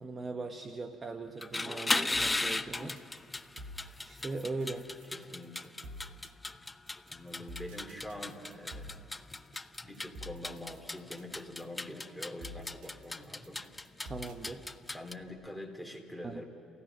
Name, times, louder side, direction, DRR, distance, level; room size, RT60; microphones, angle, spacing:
voice 1, 0.0-3.0 4.0-4.9 14.0-14.7 16.2-16.4, right 3 dB, 30° right, 7 dB, 1.0 m, -40 dB
sound 1, 1.3-15.1, left 2 dB, 15° left, 0.6 m, -37 dB
sound 2, 2.1-15.3, equal, 80° right, 1.7 m, -49 dB
voice 2, 5.1-5.7 7.1-9.0 9.8-13.6 14.9-16.4, left 1 dB, ahead, 4 dB, 3.0 m, -45 dB
29.5 x 15.5 x 6.0 m, 2.6 s
supercardioid pair, 70°, 0 cm